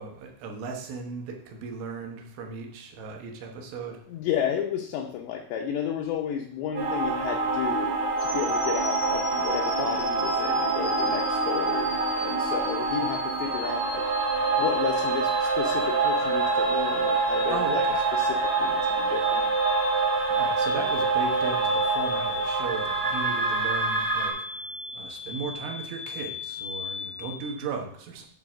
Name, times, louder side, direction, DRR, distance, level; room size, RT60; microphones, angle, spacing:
voice 1, 0.0-4.0 17.5-18.1 20.3-24.3 24.9-28.3, right 5 dB, 75° right, 2 dB, 3.4 m, -36 dB
voice 2, 4.1-14.1 14.6-17.8 18.1-19.5, left 9 dB, 85° left, 2 dB, 2.4 m, -32 dB
sound 1, 6.7-24.3, right 3 dB, 45° right, 2.6 m, -26 dB
sound 2, 8.2-27.5, left 3 dB, 45° left, 0.9 m, -38 dB
9.2 x 4.7 x 6.1 m, 0.62 s
omnidirectional pair, 5.8 m